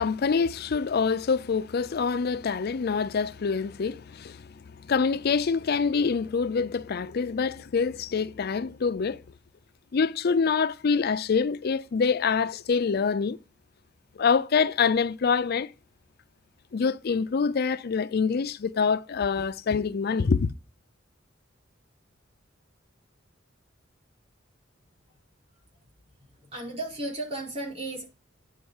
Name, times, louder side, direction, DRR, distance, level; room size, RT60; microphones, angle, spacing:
voice 1, 0.0-4.5 4.9-9.2 9.9-13.4 14.2-15.7 16.7-20.5, left 5 dB, 55° left, 0.4 m, -25 dB
voice 2, 26.4-28.0, right 2 dB, 35° right, 4.8 m, -34 dB
9.6 x 4.3 x 7.1 m
head